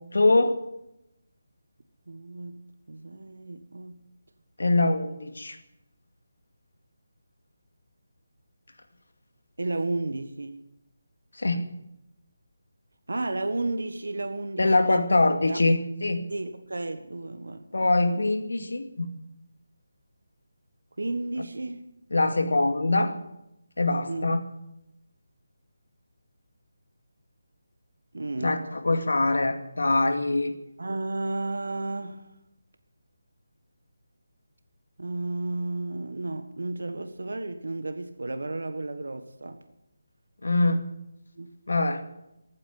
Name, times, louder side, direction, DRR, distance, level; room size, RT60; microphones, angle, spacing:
voice 1, 0.1-0.6 4.6-5.6 11.4-11.7 14.6-16.2 17.7-19.1 22.1-23.2 23.8-24.4 28.4-30.5 40.4-40.8 41.7-42.0, left 2 dB, 85° left, 2.3 m, -23 dB
voice 2, 2.1-2.6 2.9-4.0 9.6-10.6 13.1-15.1 15.5-15.6 16.3-17.7 18.1-18.3 21.0-21.8 24.1-24.2 28.1-28.6 30.8-32.3 35.0-39.6 41.3-41.5, right 2 dB, 85° right, 1.4 m, -32 dB
15.0 x 9.0 x 9.3 m
figure-of-eight pair, 175°, 0 cm